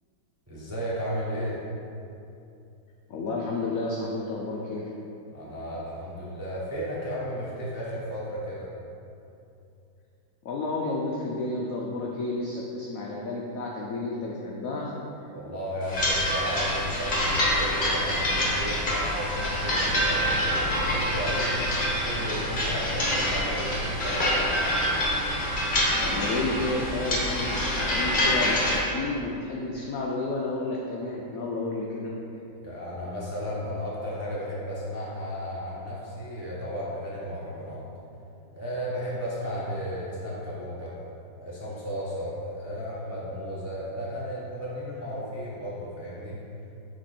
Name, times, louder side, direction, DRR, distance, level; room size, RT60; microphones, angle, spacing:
voice 1, 0.5-1.6 5.3-8.7 15.3-21.7 22.0-24.7 32.6-37.8 38.5-40.9 41.4-46.4, equal, 15° right, -8 dB, 0.5 m, -34 dB
voice 2, 3.1-4.9 10.4-14.9 26.0-32.1, left 2 dB, 80° left, -2 dB, 0.7 m, -31 dB
sound 1, 15.9-28.8, left 1 dB, 35° left, 0.9 m, -26 dB
6.1 x 4.4 x 4.2 m, 2.7 s
omnidirectional pair, 2.2 m